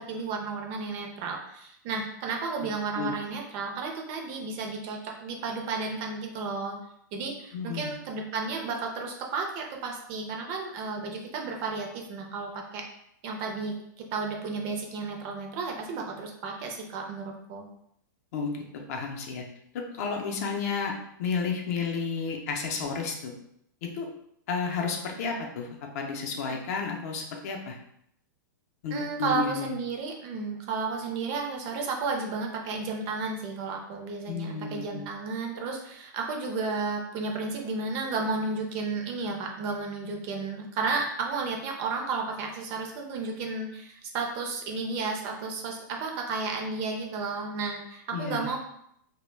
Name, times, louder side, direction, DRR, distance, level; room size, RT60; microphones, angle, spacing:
voice 1, 0.0-6.8 7.1-12.8 13.2-17.7 26.5-26.6 28.9-48.6, right 4 dB, 35° right, 2 dB, 0.4 m, -33 dB
voice 2, 7.5-7.9 18.3-18.6 18.9-19.4 19.7-23.3 23.8-24.1 24.5-25.7 25.9-27.8 28.8-29.7 34.3-35.0 48.1-48.5, left 5 dB, 50° left, 1 dB, 0.5 m, -32 dB
2.1 x 2.1 x 3.1 m, 0.73 s
hypercardioid pair, 150°, 11 cm